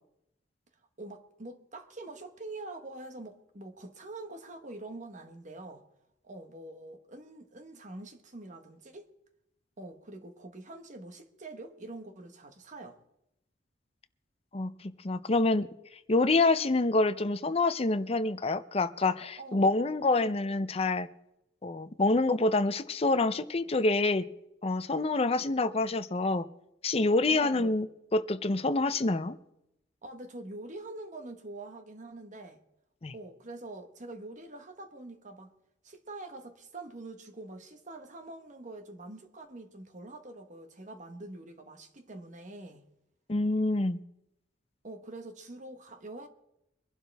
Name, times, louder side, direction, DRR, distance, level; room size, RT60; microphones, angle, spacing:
voice 1, 1.0-5.8 6.2-9.1 9.8-13.0 19.4-19.7 27.3-27.8 30.0-32.6 33.1-35.5 35.8-42.8 44.8-46.3, right 2 dB, 45° right, 1.4 m, -45 dB
voice 2, 15.0-15.7 16.1-21.1 21.6-24.2 24.6-26.5 26.8-27.9 28.1-29.4 33.0-33.1 43.3-44.0, left 2 dB, 35° left, 0.6 m, -27 dB
23.0 x 11.5 x 3.5 m
head